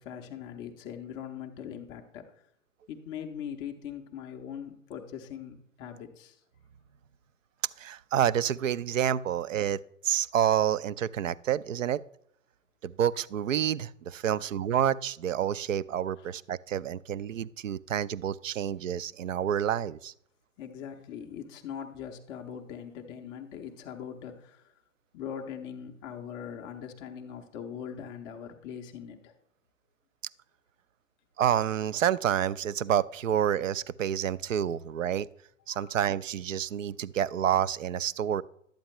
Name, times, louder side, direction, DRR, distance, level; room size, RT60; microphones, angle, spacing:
voice 1, 0.0-2.2 2.9-6.4 16.2-16.3 20.6-24.6 25.1-29.3 35.7-35.9, left 8 dB, 10° left, 4 dB, 0.4 m, -41 dB
voice 2, 7.8-12.0 12.8-20.1 31.4-35.3 35.7-38.4, right 10 dB, 70° right, 18 dB, 0.5 m, -28 dB
11.5 x 8.6 x 3.0 m, 0.72 s
figure-of-eight pair, 115°, 40 cm